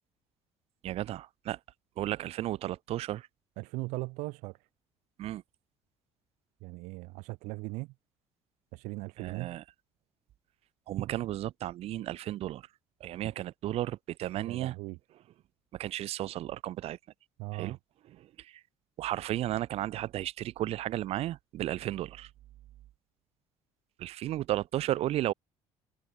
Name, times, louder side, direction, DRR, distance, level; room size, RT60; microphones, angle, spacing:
voice 1, 0.8-1.6 2.0-3.3 5.2-5.4 9.2-9.6 10.9-12.7 13.0-14.7 15.7-17.0 17.5-17.8 18.1-18.6 19.0-22.3 24.0-25.3, right 14 dB, 60° right, 0.6 m, -34 dB
voice 2, 3.6-4.6 6.6-7.9 8.7-9.6 14.4-15.0 17.4-17.8, right 24 dB, 90° right, 1.3 m, -39 dB
open air
cardioid pair, 105°, 12 cm